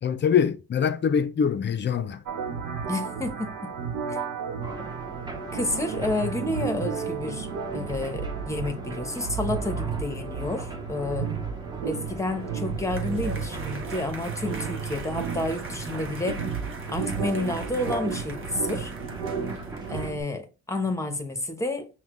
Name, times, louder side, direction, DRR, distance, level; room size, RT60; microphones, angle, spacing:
voice 1, 0.0-2.2, left 7 dB, 35° left, 0.5 m, -24 dB
sound 1, 2.3-20.2, right 6 dB, 75° right, 1.0 m, -33 dB
voice 2, 2.9-3.7 4.1-4.2 5.5-11.3 11.8-16.4 16.9-18.9 19.9-21.9, left 2 dB, 10° left, 0.9 m, -30 dB
sound 2, 4.6-20.1, right 2 dB, 15° right, 0.8 m, -41 dB
sound 3, 12.3-20.1, right 4 dB, 45° right, 1.0 m, -42 dB
5.6 x 2.3 x 3.1 m
cardioid pair, 90°, 30 cm